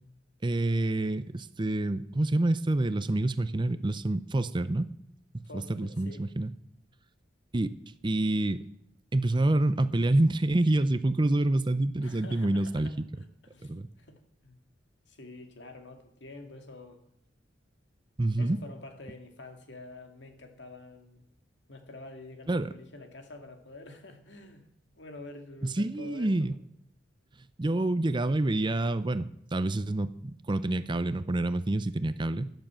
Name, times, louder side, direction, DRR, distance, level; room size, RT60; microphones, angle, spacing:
voice 1, 0.4-4.9 5.3-6.5 7.5-7.7 8.0-8.6 9.1-12.9 13.6-13.9 18.2-18.6 22.5-22.7 25.6-26.6 27.6-32.5, right 2 dB, 25° right, 13 dB, 0.6 m, -27 dB
voice 2, 5.4-6.3 12.0-14.6 15.1-17.0 18.4-21.2 21.7-24.6 24.9-26.5, left 2 dB, 70° left, 5 dB, 2.3 m, -48 dB
12.5 x 11.5 x 7.6 m, 0.74 s
head